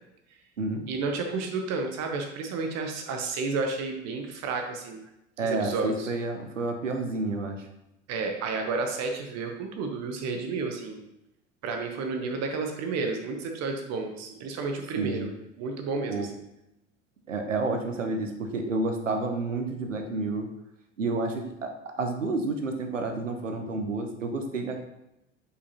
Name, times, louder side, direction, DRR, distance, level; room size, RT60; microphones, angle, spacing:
voice 1, 0.9-5.0 5.4-6.1 8.1-11.0 11.6-16.3, right 4 dB, 45° right, 4 dB, 1.0 m, -31 dB
voice 2, 5.4-7.7 15.0-15.3 16.1-16.3 17.3-20.5 21.0-21.7 22.0-24.8, right 3 dB, 85° right, 5 dB, 0.8 m, -30 dB
6.7 x 5.2 x 2.9 m, 0.89 s
figure-of-eight pair, 75°, 37 cm